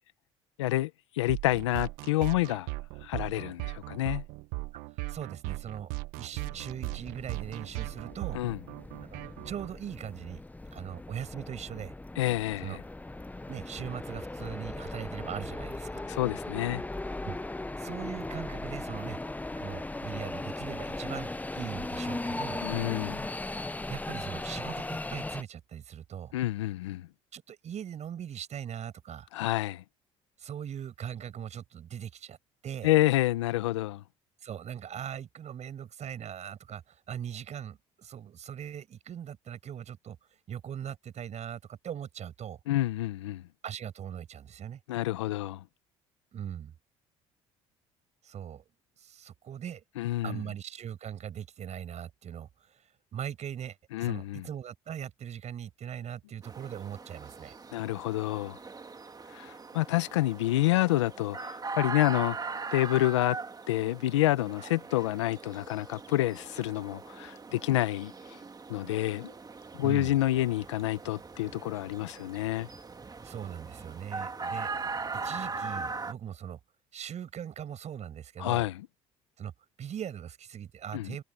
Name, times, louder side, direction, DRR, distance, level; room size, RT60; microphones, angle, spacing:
voice 1, 0.6-2.7 3.0-4.2 8.3-8.6 12.2-12.8 16.1-16.8 22.6-23.3 26.3-27.1 29.3-29.8 32.8-34.0 42.7-43.4 44.9-45.6 50.0-50.4 53.9-54.5 57.7-58.6 59.3-62.4 62.7-63.4 63.7-68.4 68.7-69.3 69.7-72.7 78.4-78.9 80.9-81.2, left 16 dB, 85° left, 1.3 m, -28 dB
sound 1, 1.3-9.7, right 22 dB, 75° right, 1.2 m, -38 dB
voice 2, 5.1-5.9 6.2-8.4 9.1-10.4 10.7-11.9 12.6-12.8 13.5-16.0 17.2-17.4 17.8-19.2 19.6-22.6 23.9-26.3 27.3-29.3 30.4-32.4 32.6-32.9 34.4-40.2 40.5-42.6 43.6-44.8 46.3-46.7 48.2-48.6 49.0-49.8 50.2-57.6 64.6-64.7 69.8-70.2 73.2-74.7 75.1-76.6 76.9-78.7 79.4-79.5 79.8-81.2, right 9 dB, 50° right, 6.1 m, -40 dB
sound 2, 6.3-25.4, left 2 dB, 10° left, 1.0 m, -38 dB
sound 3, 56.4-76.1, right 4 dB, 25° right, 2.4 m, -40 dB
hypercardioid pair, 65°, 15 cm